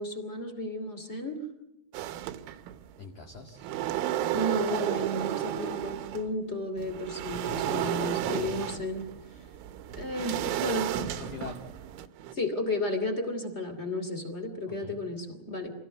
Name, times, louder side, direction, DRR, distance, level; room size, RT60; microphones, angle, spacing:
voice 1, 0.0-1.4 4.3-9.1 9.9-11.3 12.3-15.7, left 1 dB, 25° left, 6 dB, 1.5 m, -33 dB
sound 1, 1.9-2.9 3.3-6.3 6.8-12.3, right 13 dB, 80° right, 3.5 m, -33 dB
voice 2, 3.0-3.7 7.3-8.6 11.2-11.7 14.7-15.0, left 4 dB, 50° left, 1 dB, 2.7 m, -42 dB
26.5 x 18.0 x 7.8 m, 0.90 s
omnidirectional pair, 5.6 m